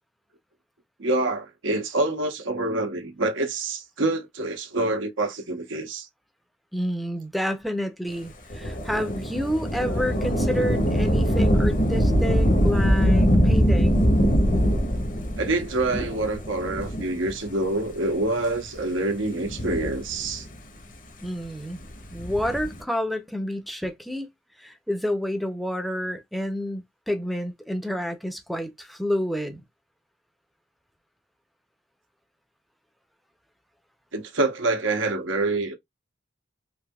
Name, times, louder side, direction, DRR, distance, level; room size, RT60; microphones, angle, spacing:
voice 1, 1.0-6.1 15.4-20.5 34.1-35.7, right 2 dB, 90° right, 0.9 m, -26 dB
voice 2, 6.7-14.0 21.2-21.8 22.1-24.3 24.6-29.6, equal, ahead, 0.5 m, -29 dB
Thunder / Rain, 8.5-17.5 18.2-18.3 19.2-20.5 22.0-22.8, equal, 45° left, 0.8 m, -22 dB
3.4 x 2.7 x 2.2 m
head